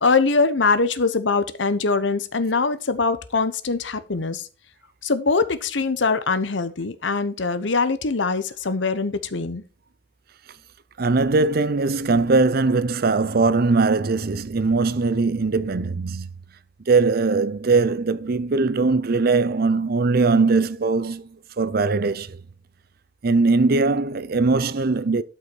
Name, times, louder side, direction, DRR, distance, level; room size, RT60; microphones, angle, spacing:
voice 1, 0.0-4.5 5.0-9.6, left 4 dB, 85° left, 1.0 m, -22 dB
voice 2, 11.0-16.3 16.9-22.4 23.2-25.2, right 3 dB, 55° right, 0.6 m, -20 dB
12.5 x 5.7 x 4.6 m
head